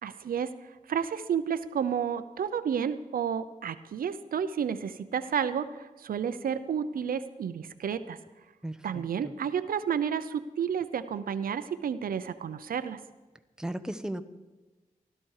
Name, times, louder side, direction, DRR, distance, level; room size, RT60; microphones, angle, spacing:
voice 1, 0.0-8.2 8.8-13.0, right 7 dB, 85° right, 11 dB, 0.7 m, -31 dB
voice 2, 8.6-9.3 13.6-14.2, right 1 dB, 5° right, 9 dB, 1.0 m, -36 dB
16.0 x 12.0 x 4.8 m, 1.2 s
cardioid pair, 55°, 14 cm